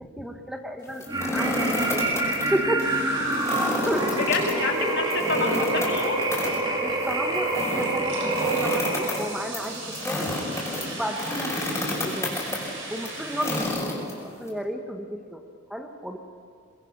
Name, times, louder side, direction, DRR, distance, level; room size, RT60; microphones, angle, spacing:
voice 1, 0.2-1.0 1.3-2.0 2.5-2.9 3.6-4.2 6.8-10.3 10.9-12.3 12.9-13.8 14.1-15.4 15.7-16.2, equal, ahead, 4 dB, 1.1 m, -32 dB
sound 1, 0.9-2.5 2.8-2.9 3.3-14.5, left 2 dB, 15° left, 5.2 m, -31 dB
sound 2, 1.1-9.4, right 2 dB, 25° right, 2.7 m, -26 dB
sound 3, 2.8-13.6, right 2 dB, 90° right, 5.9 m, -40 dB
voice 2, 4.1-6.2 11.3-11.5 13.4-13.6, left 3 dB, 60° left, 1 dB, 2.8 m, -29 dB
23.0 x 21.0 x 6.0 m, 2.5 s
head